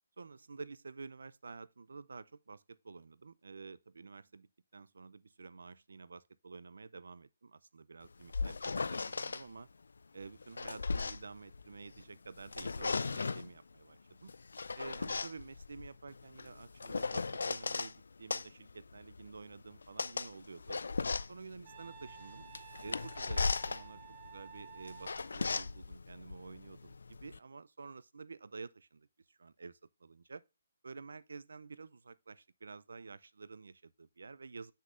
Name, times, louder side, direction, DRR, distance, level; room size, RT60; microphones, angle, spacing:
voice 1, 0.2-4.5 4.7-9.7 10.1-14.3 14.8-20.8 21.3-22.5 22.8-30.4 30.8-34.7, right 4 dB, 85° right, 0.4 m, -50 dB
sound 1, 8.0-9.4 10.2-12.0 12.4-13.5 14.3-17.9 18.3-27.4, left 4 dB, 85° left, 0.3 m, -37 dB
Wind instrument woodwind instrument, 21.6-25.3, right 9 dB, 30° right, 1.0 m, -53 dB
7.4 x 6.5 x 2.5 m
hypercardioid pair, 165°, 0 cm